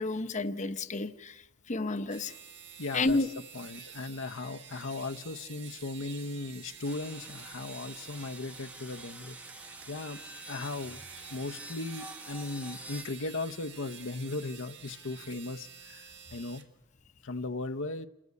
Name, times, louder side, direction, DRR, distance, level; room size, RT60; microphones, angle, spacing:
voice 1, 0.0-2.3 2.9-3.3, left 2 dB, 35° left, 10 dB, 0.9 m, -31 dB
sound 1, 2.0-16.7, right 7 dB, 55° right, 1.7 m, -49 dB
voice 2, 2.8-3.2 3.5-10.2 10.5-11.0 11.3-16.6 17.2-18.1, left 3 dB, 65° left, 7 dB, 0.8 m, -37 dB
sound 2, 6.8-13.0, right 1 dB, 5° right, 0.9 m, -48 dB
28.5 x 13.5 x 9.6 m, 0.95 s
head